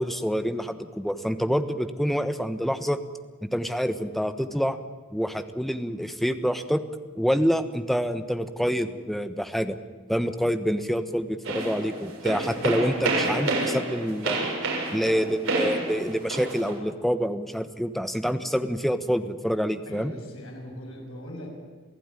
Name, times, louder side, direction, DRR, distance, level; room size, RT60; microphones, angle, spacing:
voice 1, 0.0-3.0 3.4-4.8 5.1-6.8 7.2-9.8 10.1-14.4 14.9-20.1, equal, ahead, 9 dB, 1.1 m, -27 dB
sound 1, 11.4-16.7, right 2 dB, 75° right, 7.5 m, -29 dB
voice 2, 19.9-21.5, equal, 75° left, 0 dB, 7.2 m, -41 dB
27.5 x 16.0 x 9.9 m, 1.4 s
head